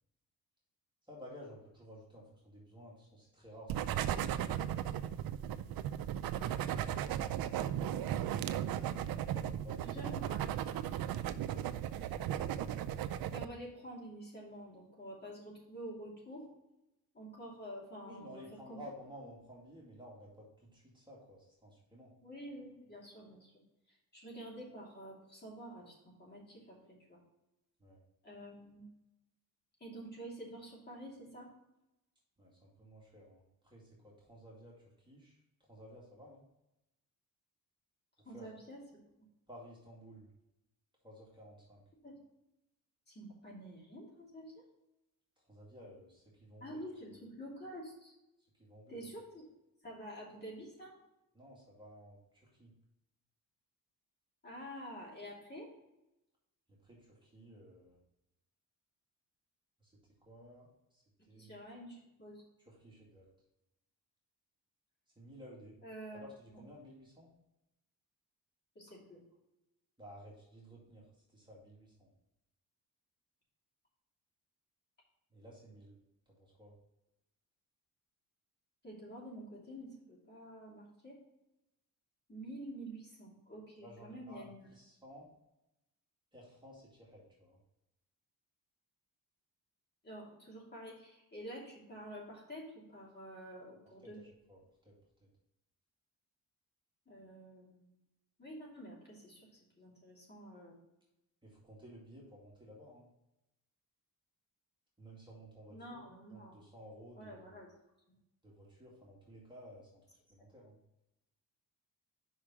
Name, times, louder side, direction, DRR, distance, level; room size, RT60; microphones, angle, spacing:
voice 1, 1.1-5.3 6.7-8.0 8.7-9.8 12.1-12.4 18.1-22.1 27.8-28.0 32.4-35.4 35.7-36.4 38.2-38.5 39.5-40.3 41.0-41.8 45.4-46.8 48.5-49.0 51.3-52.7 56.7-58.0 59.8-59.9 60.2-61.6 62.6-63.3 65.2-65.8 66.1-67.3 70.0-72.1 75.3-75.9 76.3-76.7 83.8-85.3 86.3-87.6 93.7-93.8 94.0-94.9 95.2-95.3 101.4-103.1 105.0-106.0 106.3-107.6 108.4-110.8, equal, 15° right, -5 dB, 2.2 m, -55 dB
sound 1, 3.7-13.5, right 10 dB, 80° right, 0.5 m, -36 dB
voice 2, 9.8-10.4 13.3-16.5 17.1-18.4 18.7-18.8 22.2-23.5 23.9-27.2 28.2-28.8 29.8-31.5 38.2-38.8 42.0-42.2 43.1-44.6 46.6-48.1 48.9-49.4 49.8-50.9 54.4-55.7 61.3-62.4 65.8-66.3 68.7-69.2 78.8-81.2 82.3-84.7 90.0-94.2 97.1-97.9 98.4-99.5 99.8-100.8 105.7-106.6 107.2-107.7, right 1 dB, 30° left, -4 dB, 2.8 m, -48 dB
5.5 x 4.9 x 5.9 m, 0.91 s
cardioid pair, 105°, 35 cm